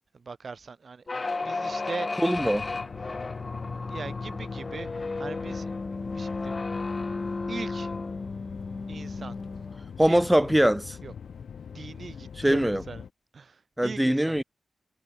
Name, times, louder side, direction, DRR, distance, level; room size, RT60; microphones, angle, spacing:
voice 1, 0.1-1.0 1.3-2.1 3.9-4.9 5.2-6.6 7.5-7.9 8.9-9.3 10.0-10.2 11.0-11.1 11.6-13.1 13.3-14.4, right 5 dB, 60° right, 1.8 m, -40 dB
sound 1, 1.1-9.8, left 3 dB, 40° left, 0.6 m, -33 dB
voice 2, 2.2-2.7 10.0-11.0 12.4-12.8 13.8-14.4, right 1 dB, 5° right, 0.7 m, -22 dB
sound 2, 2.3-13.1, left 7 dB, 75° left, 2.3 m, -42 dB
cardioid pair, 55°, 0 cm